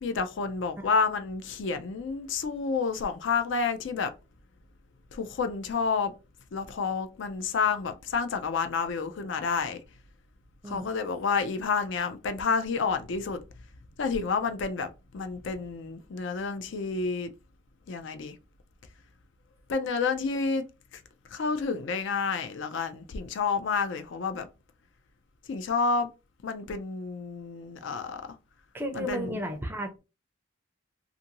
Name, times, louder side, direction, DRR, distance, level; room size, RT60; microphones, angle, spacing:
voice 1, 0.0-4.1 5.1-6.1 6.5-9.8 10.7-13.4 14.0-17.3 17.9-18.3 19.7-20.6 21.3-24.5 25.5-26.1 26.4-28.2 28.9-29.4, left 5 dB, 60° left, 0.4 m, -29 dB
voice 2, 28.7-30.0, equal, 10° right, 0.5 m, -34 dB
2.6 x 2.5 x 2.8 m
head